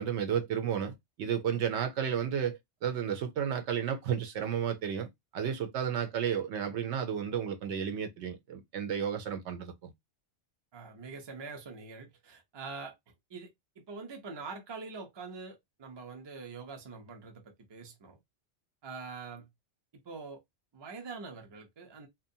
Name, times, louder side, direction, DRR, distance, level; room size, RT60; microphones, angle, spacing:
voice 1, 0.0-5.1 5.3-9.9, right 8 dB, 75° right, 0.9 m, -32 dB
voice 2, 10.7-13.0 13.3-13.5 13.9-18.2 18.8-19.5 20.0-20.4 20.7-22.1, right 4 dB, 35° right, 0.5 m, -44 dB
2.5 x 2.2 x 2.6 m
omnidirectional pair, 1.2 m